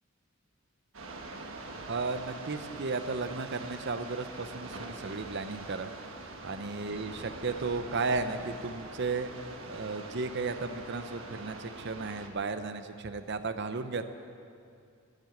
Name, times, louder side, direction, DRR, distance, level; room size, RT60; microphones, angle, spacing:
sound 1, 0.9-12.3, right 2 dB, 75° right, 1.4 m, -44 dB
voice 1, 1.9-5.9 6.4-9.3 9.7-14.0, right 3 dB, 55° right, 9 dB, 0.7 m, -34 dB
12.5 x 9.2 x 9.3 m, 2.4 s
head